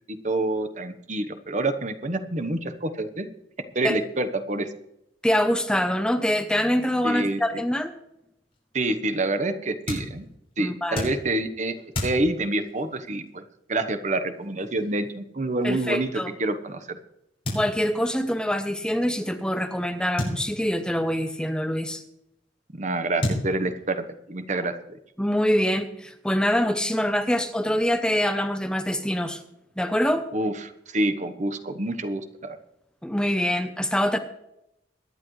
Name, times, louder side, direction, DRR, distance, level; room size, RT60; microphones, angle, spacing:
voice 1, 0.2-3.3 3.7-4.7 7.0-7.4 8.7-10.3 10.6-11.7 12.0-13.4 13.7-16.1 16.4-17.0 22.7-25.0 30.3-30.5 30.9-32.6, right 2 dB, 40° right, 10 dB, 1.1 m, -27 dB
voice 2, 5.2-7.9 10.6-11.1 15.6-16.3 17.5-22.0 25.2-29.4 29.8-30.3 33.0-34.2, equal, 5° left, 8 dB, 0.7 m, -25 dB
sound 1, 8.5-16.8 17.4-18.2 18.5-18.6 18.7-18.8 20.2-21.3 22.4-22.5 23.2-24.1, left 1 dB, 30° left, 6.7 m, -34 dB
23.0 x 10.5 x 3.2 m, 0.82 s
head